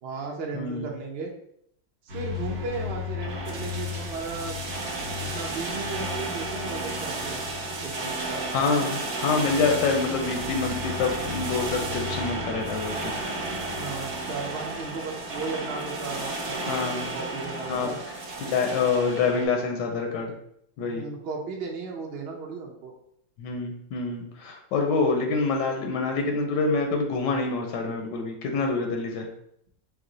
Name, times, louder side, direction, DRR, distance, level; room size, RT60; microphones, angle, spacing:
voice 1, 0.0-1.3 2.0-4.6 5.2-7.4 7.8-8.5 13.7-18.0 20.8-22.9, right 4 dB, 80° right, 0 dB, 0.5 m, -35 dB
voice 2, 0.5-0.9 8.5-13.1 16.7-17.1 17.7-17.9 18.4-20.3 20.8-21.1 23.4-29.3, left 4 dB, 80° left, 3 dB, 1.3 m, -26 dB
sound 1, 2.1-19.5, right 1 dB, 60° right, 1.1 m, -32 dB
4.7 x 2.0 x 3.8 m, 0.71 s
omnidirectional pair, 1.9 m